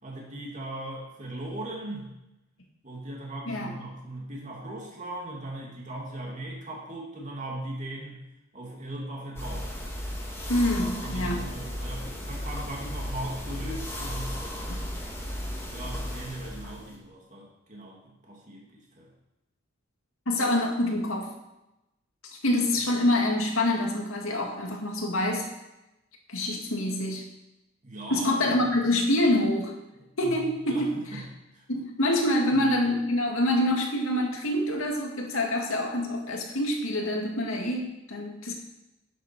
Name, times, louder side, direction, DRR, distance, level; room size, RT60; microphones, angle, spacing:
voice 1, 0.0-2.2 2.8-8.3 8.5-9.9 10.8-14.4 15.7-19.1 27.8-28.7 30.0-31.3 31.5-31.6 32.5-32.6, right 1 dB, 35° right, -2 dB, 2.7 m, -39 dB
sound 1, 9.4-17.0, equal, 15° left, 1.9 m, -35 dB
voice 2, 10.5-11.5 20.3-21.3 22.4-25.5 26.3-27.2 28.1-29.7 30.2-31.2 31.7-38.5, left 1 dB, 85° left, 1 dB, 2.2 m, -26 dB
10.0 x 7.8 x 6.0 m, 0.93 s
head